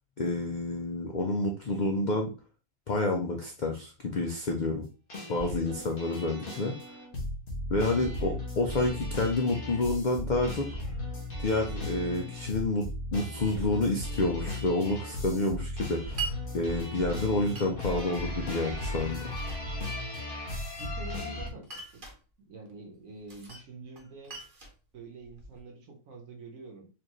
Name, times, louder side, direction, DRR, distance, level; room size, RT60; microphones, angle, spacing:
voice 1, 0.2-2.3 2.9-4.9 5.3-6.7 7.7-10.7 11.4-19.3, left 2 dB, 70° left, 2 dB, 0.4 m, -29 dB
sound 1, 5.1-21.5, left 1 dB, 40° left, 1.1 m, -36 dB
Glass, 16.2-16.4 17.5-18.1 18.9-19.7 20.5-21.2 21.6-22.2 23.3-23.7 24.0-25.6, right 5 dB, 40° right, 1.0 m, -41 dB
voice 2, 20.7-21.7 22.4-24.4 24.9-26.9, right 3 dB, 70° right, 1 dB, 1.3 m, -46 dB
4.5 x 2.5 x 2.9 m, 0.33 s
omnidirectional pair, 1.5 m